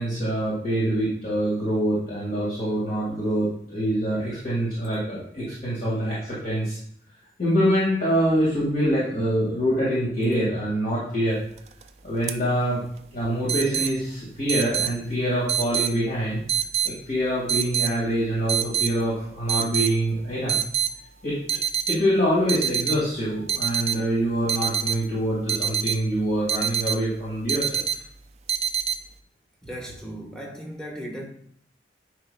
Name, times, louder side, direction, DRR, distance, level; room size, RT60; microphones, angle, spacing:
voice 1, 0.0-6.8 7.4-11.4 12.0-12.8 13.1-16.4 16.8-20.5 21.2-21.4 21.9-27.8, equal, 50° left, 1.9 m, -25 dB
sound 1, 11.6-11.8 12.3-12.4 13.5-13.9 14.5-14.9 15.5-15.9 16.5-16.9 17.5-17.9 18.5-18.9 19.5-19.9 20.5-20.9 21.5-22.0 22.5-23.0 23.5-24.0 24.5-25.0 25.5-26.0 26.5-27.0 27.5-28.0 28.5-29.0, right 8 dB, 40° right, 0.4 m, -25 dB
voice 2, 29.6-31.3, equal, 5° left, 1.1 m, -36 dB
9.5 x 5.0 x 2.2 m
head